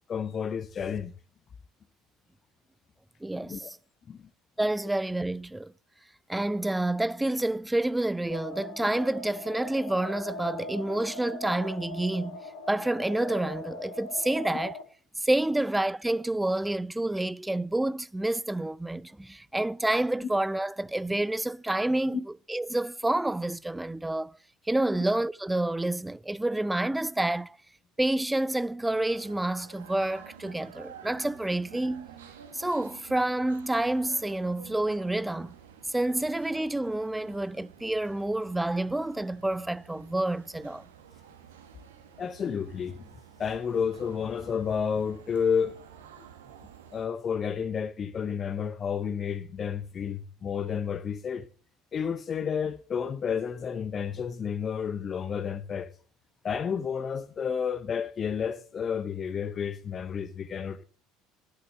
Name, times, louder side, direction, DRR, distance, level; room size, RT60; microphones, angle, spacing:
voice 1, 0.1-1.1 3.4-3.7 4.1-4.2 42.2-43.1 43.4-45.8 46.9-51.5 51.9-55.9 56.4-60.8, left 7 dB, 35° left, 0.6 m, -31 dB
voice 2, 3.2-3.8 4.6-5.7 6.3-12.4 12.7-14.8 15.2-22.2 22.5-24.4 24.7-27.6 28.0-32.1 32.5-35.5 35.9-40.8, right 1 dB, 10° right, 0.4 m, -28 dB
sound 1, 8.3-14.8, left 2 dB, 65° left, 3.1 m, -41 dB
sound 2, 28.9-47.1, right 8 dB, 75° right, 1.4 m, -51 dB
11.0 x 6.6 x 6.4 m
figure-of-eight pair, 65°, 0 cm